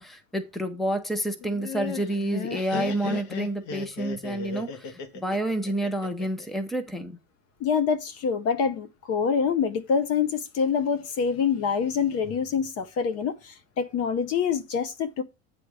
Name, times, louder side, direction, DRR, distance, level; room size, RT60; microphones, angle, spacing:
voice 1, 0.0-7.2, right 1 dB, ahead, 0.8 m, -29 dB
Laughter, 1.4-6.5, left 6 dB, 70° left, 1.6 m, -35 dB
voice 2, 7.6-15.2, left 6 dB, 40° left, 0.8 m, -26 dB
9.3 x 3.4 x 6.2 m
supercardioid pair, 145°, 39 cm